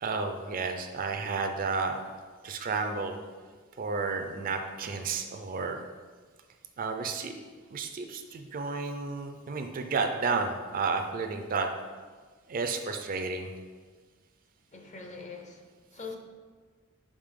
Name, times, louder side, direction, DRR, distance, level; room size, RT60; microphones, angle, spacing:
voice 1, 0.0-2.0 2.4-3.2 3.8-5.8 6.8-7.3 7.7-11.7 12.5-13.5, right 4 dB, 45° right, 6 dB, 0.4 m, -31 dB
voice 2, 14.7-16.2, left 4 dB, 35° left, 3 dB, 0.6 m, -43 dB
5.1 x 5.1 x 3.6 m, 1.5 s
head